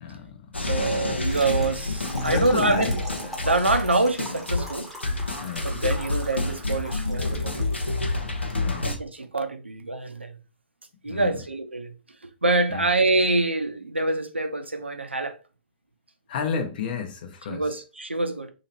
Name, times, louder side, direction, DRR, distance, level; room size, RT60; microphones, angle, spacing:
voice 1, 0.0-0.6 2.2-2.9 5.4-5.7 8.5-8.9 11.1-11.3 12.7-12.8 16.3-17.6, left 6 dB, 55° left, 0.8 m, -31 dB
sound 1, 0.5-9.0, left 2 dB, 85° left, 0.8 m, -28 dB
voice 2, 0.7-3.0 3.4-4.9 5.6-7.9 8.8-10.4 11.0-11.9 12.2-15.4 17.5-18.5, right 2 dB, 90° right, 0.6 m, -26 dB
Trickle dribble / Fill (with liquid), 1.1-8.5, right 1 dB, ahead, 1.1 m, -41 dB
2.9 x 2.8 x 4.1 m
figure-of-eight pair, 110°, 6 cm